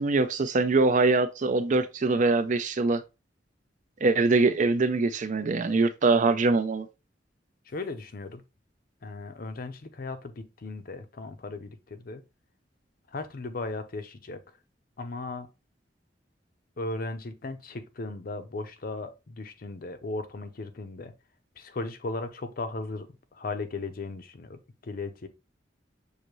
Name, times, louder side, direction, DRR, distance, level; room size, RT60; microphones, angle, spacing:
voice 1, 0.0-3.0 4.0-6.9, right 3 dB, 45° right, 0.4 m, -23 dB
voice 2, 7.7-8.4 9.0-12.2 13.1-14.4 15.0-15.5 16.8-21.1 21.6-23.1 23.3-25.3, left 3 dB, 55° left, 0.6 m, -36 dB
6.5 x 2.6 x 3.0 m
head